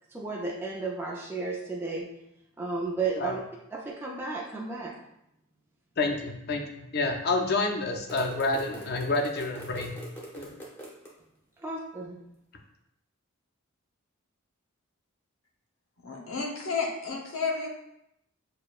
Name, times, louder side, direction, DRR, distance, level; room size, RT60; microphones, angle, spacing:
voice 1, 0.1-2.1 2.6-3.4 3.7-4.9 11.6-12.2, right 3 dB, 10° right, -3 dB, 0.4 m, -33 dB
voice 2, 6.0-9.9 10.4-10.5, left 2 dB, 50° left, 4 dB, 0.5 m, -28 dB
sound 1, 8.1-11.1, equal, 10° left, 0.7 m, -43 dB
voice 3, 16.0-17.7, left 4 dB, 70° left, 0 dB, 0.8 m, -31 dB
6.4 x 2.2 x 2.4 m, 0.81 s
head